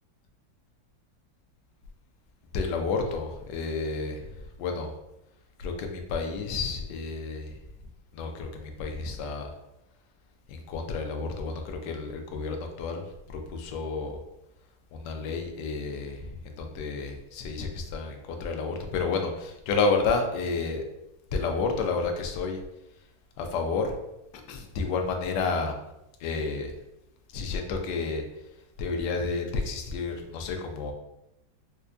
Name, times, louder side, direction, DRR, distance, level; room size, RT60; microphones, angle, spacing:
voice 1, 2.5-4.9 5.6-7.6 8.1-9.5 10.5-14.2 14.9-20.8 21.3-22.6 23.4-23.9 24.5-25.7 26.2-26.7 27.3-28.5 28.8-30.9, left 4 dB, 75° left, 4 dB, 1.1 m, -30 dB
4.5 x 2.2 x 2.5 m, 0.90 s
omnidirectional pair, 2.1 m